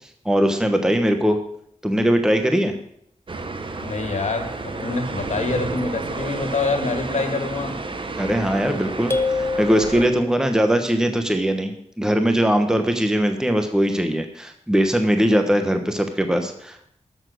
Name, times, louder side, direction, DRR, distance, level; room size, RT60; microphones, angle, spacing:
voice 1, 0.2-1.4 1.8-2.7 8.2-11.7 12.0-16.9, equal, 5° right, 6 dB, 1.1 m, -20 dB
sound 1, 3.3-10.1, right 3 dB, 45° right, 1.1 m, -31 dB
voice 2, 3.8-7.8, left 4 dB, 70° left, 6 dB, 1.9 m, -26 dB
sound 2, 9.1-10.6, left 3 dB, 20° left, 0.8 m, -26 dB
12.5 x 7.0 x 6.4 m, 0.68 s
wide cardioid pair, 125°, 12 cm